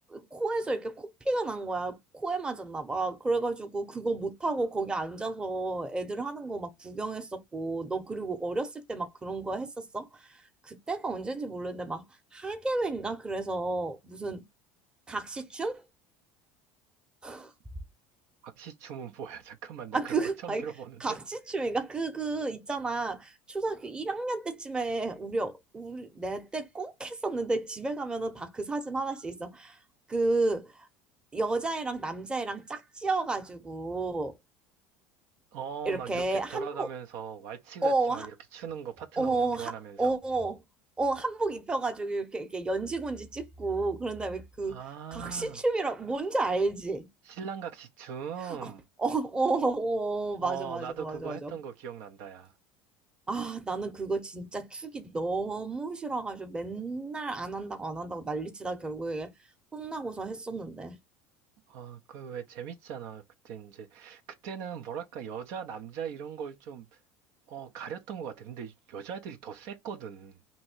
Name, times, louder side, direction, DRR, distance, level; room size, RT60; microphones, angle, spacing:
voice 1, 0.1-12.0 12.3-14.4 15.1-15.8 17.2-17.5 19.9-20.6 21.0-29.8 30.1-30.9 31.3-34.4 35.8-36.9 37.8-38.3 39.2-39.7 40.0-40.6 41.0-44.8 45.1-47.1 48.5-48.7 49.0-51.5 53.3-59.3 59.7-61.0, right 3 dB, 15° right, 0.9 m, -32 dB
voice 2, 18.4-20.1 20.4-21.2 35.5-40.2 44.7-45.6 47.2-48.8 50.4-52.5 61.7-67.0 67.5-70.4, right 7 dB, 65° right, 0.6 m, -40 dB
3.0 x 2.7 x 4.4 m
supercardioid pair, 100°, 6 cm